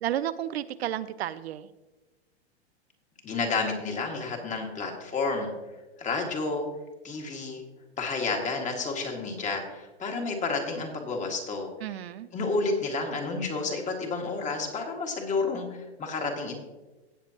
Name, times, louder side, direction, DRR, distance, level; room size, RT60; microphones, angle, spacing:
voice 1, 0.0-1.7 11.8-12.3, right 11 dB, 70° right, 14 dB, 0.5 m, -32 dB
voice 2, 3.2-5.5 6.0-6.7 7.0-7.6 8.0-11.7 12.3-16.6, left 3 dB, 20° left, 2 dB, 2.0 m, -30 dB
17.5 x 6.8 x 2.9 m, 1.2 s
hypercardioid pair, 110°, 33 cm